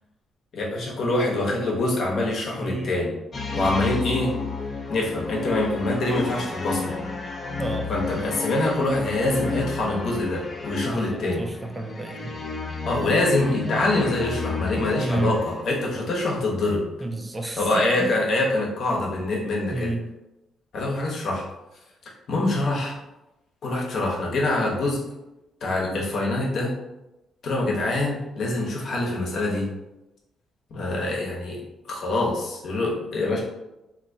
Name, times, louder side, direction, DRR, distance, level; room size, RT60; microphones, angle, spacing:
voice 1, 0.5-3.2 3.5-4.3 4.9-7.0 7.9-11.4 12.9-16.8 17.6-19.9 20.7-21.4 22.3-23.0 23.6-25.0 25.6-26.7 27.4-29.7 30.7-31.6 31.9-33.4, left 2 dB, 60° left, -2 dB, 1.0 m, -25 dB
voice 2, 2.6-2.9 7.6-7.9 10.8-12.4 15.0-15.4 17.0-18.1 19.7-20.0, right 2 dB, 20° right, 4 dB, 0.4 m, -30 dB
sound 1, 3.3-15.9, left 4 dB, 35° left, 0.5 m, -32 dB
3.4 x 2.7 x 2.7 m, 0.96 s
cardioid pair, 90°, 0 cm